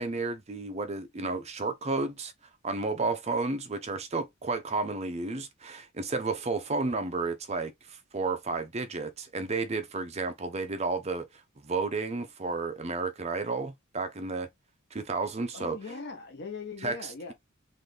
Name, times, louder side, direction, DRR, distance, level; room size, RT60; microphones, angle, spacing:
voice 1, 0.0-2.3 2.6-11.3 11.6-14.5 14.9-15.8 16.8-17.3, right 3 dB, 30° right, 0.6 m, -32 dB
voice 2, 15.5-17.3, left 4 dB, 55° left, 0.8 m, -40 dB
3.8 x 2.5 x 3.2 m
head